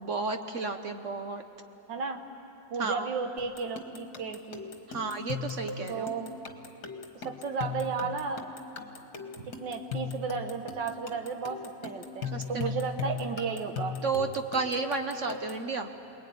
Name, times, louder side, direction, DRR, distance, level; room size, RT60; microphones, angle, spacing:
voice 1, 0.0-1.4 2.8-3.1 4.9-6.1 9.4-9.5 12.3-12.7 14.0-15.9, right 4 dB, 50° right, 6 dB, 1.1 m, -32 dB
voice 2, 1.9-2.2 2.7-4.7 5.9-6.3 7.2-8.5 9.6-14.0, right 5 dB, 75° right, 5 dB, 1.9 m, -34 dB
sound 1, 3.4-15.7, left 5 dB, 55° left, 2.0 m, -38 dB
28.5 x 21.0 x 9.4 m, 3.0 s
omnidirectional pair, 2.0 m